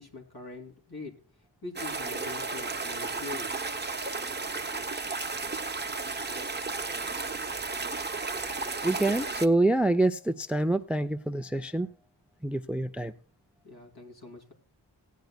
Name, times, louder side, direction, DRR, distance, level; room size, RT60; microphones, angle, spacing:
voice 1, 0.0-3.5 13.6-14.5, left 3 dB, 60° left, 3.4 m, -43 dB
sound 1, 1.8-9.5, right 3 dB, 25° right, 0.8 m, -33 dB
voice 2, 8.8-11.9 12.4-13.1, right 2 dB, 5° right, 0.4 m, -26 dB
17.5 x 9.4 x 2.3 m
wide cardioid pair, 75°, 43 cm